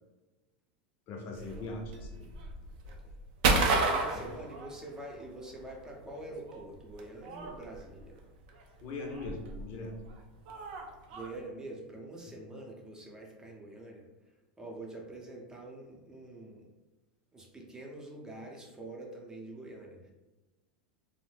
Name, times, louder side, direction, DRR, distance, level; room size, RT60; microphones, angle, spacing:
voice 1, 1.1-2.4 8.8-9.9 12.2-12.3, left 2 dB, 50° left, 2 dB, 0.6 m, -41 dB
sound 1, 1.4-5.2 5.5-11.3, right 3 dB, 65° right, 0.5 m, -32 dB
voice 2, 3.5-8.2 11.1-14.0 14.6-16.7 17.3-20.1, right 2 dB, 10° right, -1 dB, 0.7 m, -45 dB
2.6 x 2.1 x 3.3 m, 1.1 s
hypercardioid pair, 100°, 5 cm